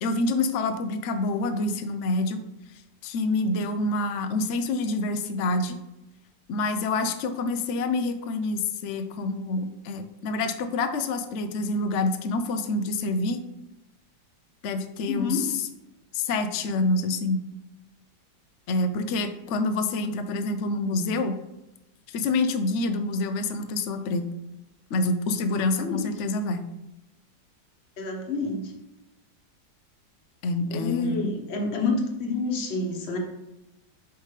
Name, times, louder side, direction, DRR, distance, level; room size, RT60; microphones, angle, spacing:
voice 1, 0.0-2.4 3.0-5.8 6.5-13.4 14.6-15.7 16.1-17.4 18.7-21.4 22.1-24.3 24.9-26.7 30.4-31.3, left 2 dB, 70° left, 8 dB, 0.7 m, -27 dB
voice 2, 15.1-15.4 25.8-26.0 28.0-28.7 30.7-33.2, left 3 dB, 40° left, 1 dB, 1.3 m, -28 dB
5.9 x 5.7 x 3.2 m, 0.94 s
omnidirectional pair, 1.9 m